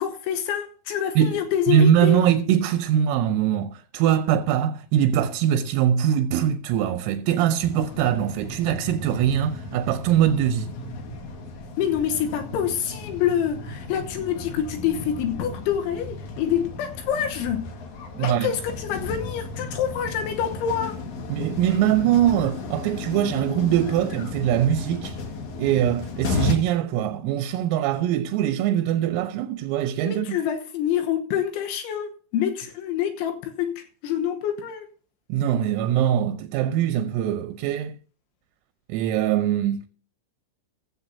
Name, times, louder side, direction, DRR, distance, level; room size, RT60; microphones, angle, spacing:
voice 1, 0.0-2.2 11.8-17.7 18.2-21.0 30.1-34.9, left 9 dB, 75° left, 3.2 m, -26 dB
voice 2, 1.7-10.7 18.2-18.5 21.3-25.2 25.6-30.3 35.3-38.0 38.9-39.8, right 10 dB, 80° right, 3.5 m, -22 dB
sound 1, 7.6-26.5, left 3 dB, 60° left, 2.1 m, -34 dB
15.5 x 13.5 x 2.8 m
omnidirectional pair, 6.0 m